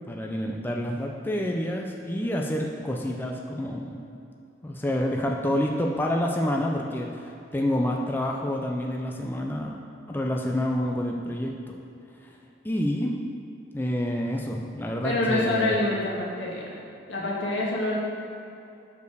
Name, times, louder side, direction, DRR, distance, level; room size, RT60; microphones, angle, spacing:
voice 1, 0.1-4.0 4.6-9.8 10.1-11.7 12.6-13.2 13.7-15.7, left 1 dB, 10° left, 0 dB, 0.5 m, -28 dB
voice 2, 15.0-16.8 17.1-18.0, left 2 dB, 80° left, -4 dB, 1.8 m, -26 dB
6.9 x 5.2 x 6.5 m, 2.7 s
head